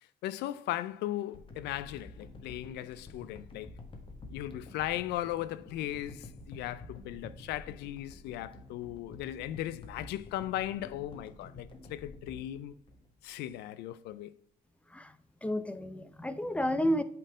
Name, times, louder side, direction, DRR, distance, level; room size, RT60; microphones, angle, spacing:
voice 1, 0.2-3.7 4.3-12.8 13.2-14.3, left 13 dB, 80° left, 0.4 m, -37 dB
sound 1, 1.3-13.6 14.1-14.2, left 2 dB, 30° left, 1.5 m, -50 dB
voice 2, 14.9-17.0, equal, 5° left, 0.6 m, -31 dB
7.8 x 4.4 x 5.0 m
cardioid pair, 110°, 17 cm